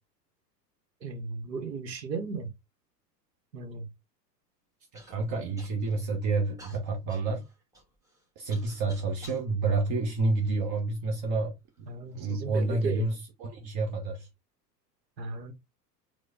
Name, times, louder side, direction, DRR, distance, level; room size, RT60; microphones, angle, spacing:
voice 1, 1.0-2.5 3.5-3.9 11.9-13.0 15.2-15.5, right 4 dB, 85° right, 1.0 m, -35 dB
Human voice / Cough, 4.9-5.1 5.6-6.1 6.6-9.5 10.2-11.0 11.7-11.8 12.5-12.9, equal, 5° right, 1.2 m, -52 dB
voice 2, 5.1-7.5 8.4-11.9 12.1-14.3, right 3 dB, 35° right, 0.8 m, -29 dB
4.4 x 2.2 x 2.6 m
figure-of-eight pair, 90°, 49 cm